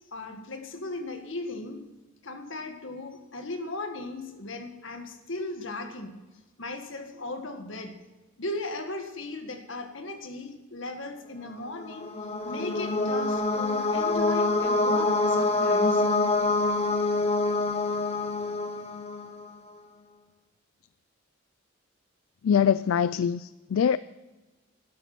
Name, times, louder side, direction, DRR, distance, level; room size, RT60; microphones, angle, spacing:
voice 1, 0.1-1.8 2.2-6.2 6.6-8.0 8.4-12.1 12.4-16.0, left 2 dB, 65° left, 5 dB, 1.8 m, -37 dB
sound 1, 11.7-19.5, left 2 dB, 30° left, 1.1 m, -26 dB
voice 2, 22.4-24.0, left 7 dB, 80° left, 16 dB, 0.3 m, -23 dB
12.5 x 12.0 x 6.0 m, 1.1 s
head